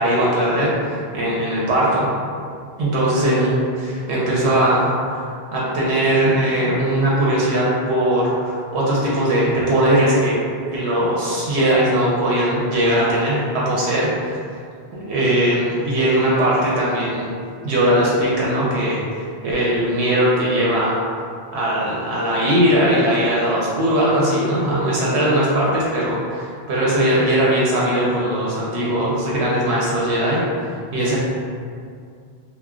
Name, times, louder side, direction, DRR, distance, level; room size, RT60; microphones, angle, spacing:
voice 1, 0.0-2.1 2.8-5.2 5.5-10.4 10.7-14.4 14.9-17.3 17.6-19.0 19.4-21.0 21.5-30.4 30.9-31.2, right 1 dB, 80° right, -6 dB, 0.9 m, -19 dB
2.2 x 2.1 x 3.5 m, 2.2 s
omnidirectional pair, 1.1 m